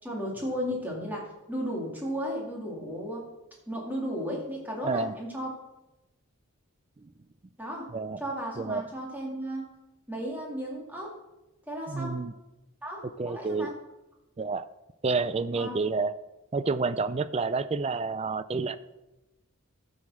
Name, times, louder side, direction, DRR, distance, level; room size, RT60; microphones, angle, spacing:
voice 1, 0.0-3.3 3.7-5.5 7.6-7.9 8.2-9.7 10.1-11.1 11.7-12.2 12.8-13.7 15.6-15.7, equal, 10° right, -2 dB, 2.2 m, -34 dB
voice 2, 4.8-5.1 7.0-7.1 7.9-8.2 8.6-8.8 11.9-12.3 13.2-13.7 14.4-14.7 15.0-16.1 16.5-18.8, right 4 dB, 30° right, 13 dB, 0.4 m, -29 dB
10.5 x 6.4 x 6.3 m, 1.0 s
head